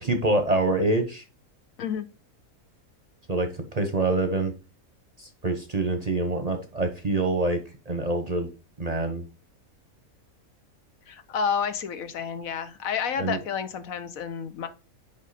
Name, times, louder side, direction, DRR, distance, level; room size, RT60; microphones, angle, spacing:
voice 1, 0.0-1.2 3.3-4.5 5.2-7.6 7.9-8.5 8.8-9.2 13.2-13.4, right 2 dB, 35° right, 6 dB, 0.8 m, -25 dB
voice 2, 11.1-14.7, left 7 dB, 70° left, 10 dB, 1.2 m, -30 dB
5.4 x 5.1 x 4.1 m, 0.31 s
omnidirectional pair, 1.5 m